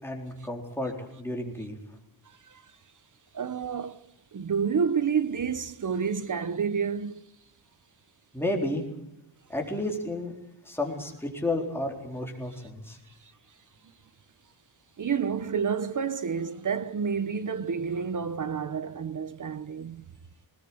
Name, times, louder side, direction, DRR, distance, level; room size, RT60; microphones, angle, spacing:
voice 1, 0.0-1.8 8.3-8.8 9.5-10.3 10.7-13.0, left 1 dB, 5° left, 4.0 m, -32 dB
voice 2, 3.3-4.0 4.3-7.2 13.2-13.3 15.0-20.1, right 6 dB, 40° right, 0.9 m, -29 dB
20.5 x 20.0 x 8.7 m
wide cardioid pair, 155°, 46 cm